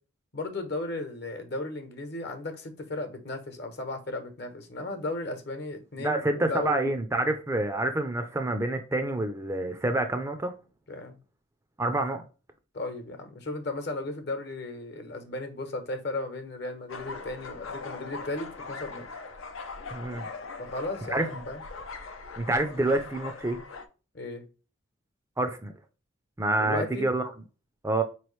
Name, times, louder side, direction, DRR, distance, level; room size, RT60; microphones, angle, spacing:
voice 1, 0.3-6.9 10.9-11.2 12.7-19.1 20.6-21.6 24.1-24.4 26.5-27.1, left 2 dB, 55° left, 1.0 m, -35 dB
voice 2, 6.0-10.5 11.8-12.2 19.9-20.3 21.1-21.3 22.4-23.6 25.4-25.7 26.4-27.3 27.8-28.0, right 2 dB, 15° right, 0.4 m, -27 dB
sound 1, 16.9-23.9, left 4 dB, 75° left, 0.7 m, -41 dB
4.6 x 3.1 x 3.2 m
head